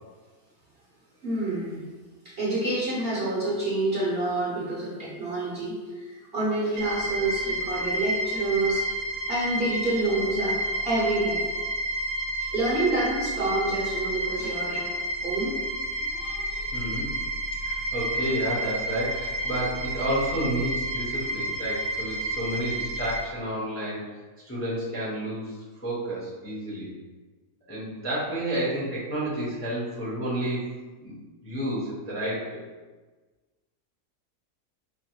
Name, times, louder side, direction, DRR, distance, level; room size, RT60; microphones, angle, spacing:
voice 1, 1.2-1.8 2.2-11.4 12.5-15.6 16.0-16.7 19.5-19.6, right 2 dB, 45° right, -7 dB, 1.0 m, -28 dB
sound 1, 6.8-23.2, right 1 dB, 70° right, 1.0 m, -30 dB
voice 2, 16.7-17.1 17.6-24.0 24.5-26.9 27.7-30.6 31.0-31.1 31.4-32.6, right 1 dB, 10° left, -7 dB, 0.8 m, -30 dB
4.6 x 2.0 x 4.5 m, 1.3 s
omnidirectional pair, 1.7 m